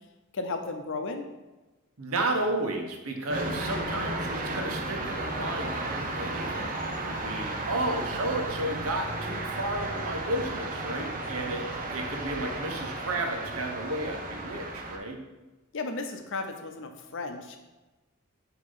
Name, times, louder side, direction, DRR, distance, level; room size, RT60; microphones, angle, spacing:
voice 1, 0.3-1.3 15.7-17.6, left 3 dB, 60° left, 5 dB, 0.7 m, -34 dB
voice 2, 2.0-6.8 7.0-15.2, right 1 dB, 85° right, 3 dB, 1.0 m, -32 dB
sound 1, 3.3-15.0, right 2 dB, 40° right, 0.7 m, -34 dB
6.4 x 3.0 x 5.5 m, 1.1 s
head